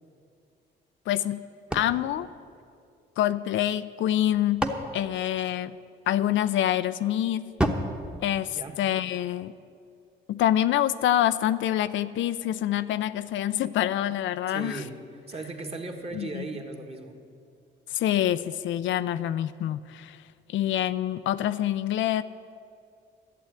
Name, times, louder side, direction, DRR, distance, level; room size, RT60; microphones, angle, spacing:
voice 1, 1.1-1.4 1.7-2.3 3.2-4.7 4.9-5.7 6.1-7.5 8.2-9.5 10.3-14.8 16.1-16.5 17.9-20.2 20.5-22.2, left 12 dB, 75° left, 13 dB, 0.5 m, -26 dB
sound 1, 1.7-3.3 4.1-6.1 7.6-9.2, equal, 5° right, 1.1 m, -33 dB
voice 2, 8.5-8.8 14.5-17.2, right 3 dB, 30° right, 4 dB, 1.7 m, -37 dB
11.5 x 7.7 x 9.8 m, 2.3 s
cardioid pair, 90°, 20 cm